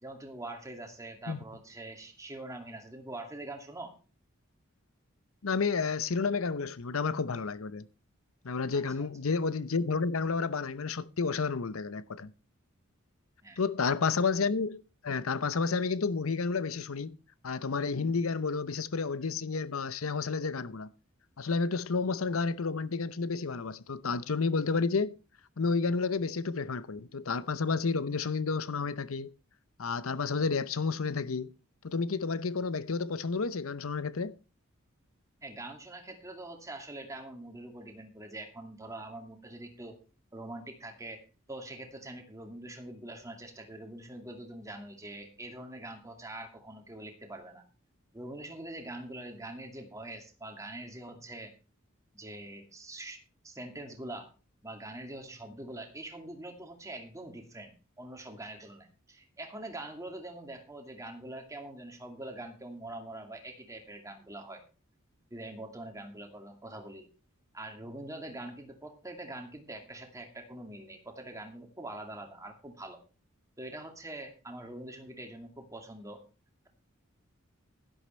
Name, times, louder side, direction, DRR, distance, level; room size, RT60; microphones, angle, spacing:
voice 1, 0.0-3.9 8.7-9.1 13.4-13.6 35.4-40.0 40.3-41.2 41.5-47.6 48.1-51.5 52.1-53.2 53.4-54.3 54.6-64.6 65.3-67.1 67.5-73.0 73.6-76.2, right 1 dB, 15° right, 2.4 m, -44 dB
voice 2, 5.4-7.9 8.4-12.3 13.6-17.2 17.4-20.9 21.4-25.2 25.6-29.3 29.8-31.5 31.8-34.3, left 4 dB, 85° left, 0.8 m, -31 dB
11.5 x 11.5 x 4.4 m
head